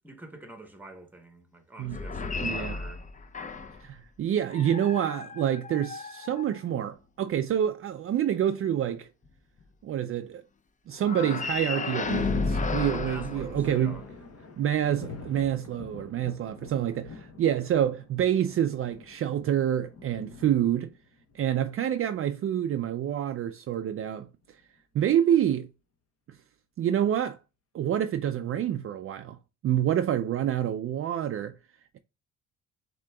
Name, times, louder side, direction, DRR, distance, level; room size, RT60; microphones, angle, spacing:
voice 1, 0.0-3.1 12.9-14.1 17.1-17.3, right 2 dB, 5° right, 1.0 m, -46 dB
sound 1, 1.8-3.9 4.5-6.9 11.0-14.2, left 4 dB, 25° left, 0.5 m, -33 dB
voice 2, 2.4-2.8 3.8-9.1 9.8-10.4 10.9-14.0 14.6-20.9 21.3-24.3 24.9-25.7 26.8-27.4 27.7-29.4 29.6-31.5, right 10 dB, 45° right, 0.4 m, -27 dB
Thunder, 13.1-22.5 24.0-24.8, left 4 dB, 50° left, 1.0 m, -47 dB
7.4 x 2.8 x 2.3 m
cardioid pair, 105°, 31 cm